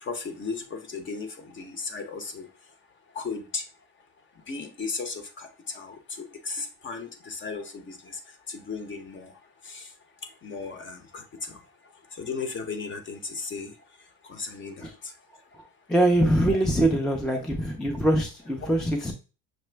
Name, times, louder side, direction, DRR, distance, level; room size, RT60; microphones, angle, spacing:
voice 1, 0.0-2.5 3.1-3.6 4.5-8.2 8.5-9.3 9.6-9.9 10.4-11.6 12.1-13.7 14.3-15.1, left 4 dB, 30° left, 8 dB, 0.8 m, -36 dB
voice 2, 15.9-19.1, right 1 dB, ahead, 2 dB, 0.4 m, -23 dB
6.1 x 2.1 x 3.2 m, 0.33 s
cardioid pair, 120°, 38 cm